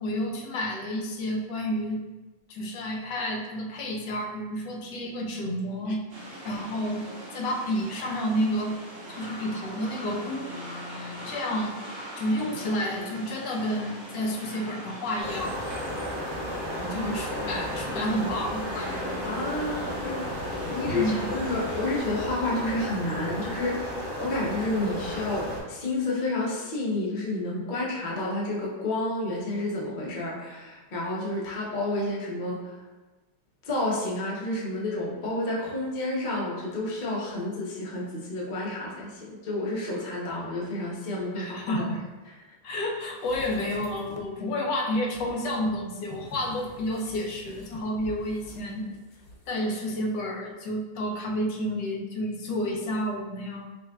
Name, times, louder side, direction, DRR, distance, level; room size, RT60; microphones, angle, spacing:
voice 1, 0.0-2.0 2.5-6.0 6.4-7.0 7.3-8.7 9.2-10.5 10.9-11.8 12.2-15.6 16.9-19.0 20.9-21.2 41.4-42.0 42.6-48.9 49.5-53.7, equal, 85° left, 0 dB, 1.3 m, -30 dB
sound 1, 6.1-22.0, right 1 dB, 65° right, 2.0 m, -41 dB
sound 2, 15.2-25.6, left 1 dB, 25° right, 1.1 m, -33 dB
voice 2, 16.8-17.8 19.2-20.4 20.7-32.8 33.7-41.9, left 2 dB, 45° left, -4 dB, 0.6 m, -30 dB
sound 3, 43.1-44.4 45.1-49.6 49.9-50.0, left 1 dB, 65° left, 1.2 m, -46 dB
5.3 x 2.6 x 2.3 m, 1.2 s
omnidirectional pair, 1.8 m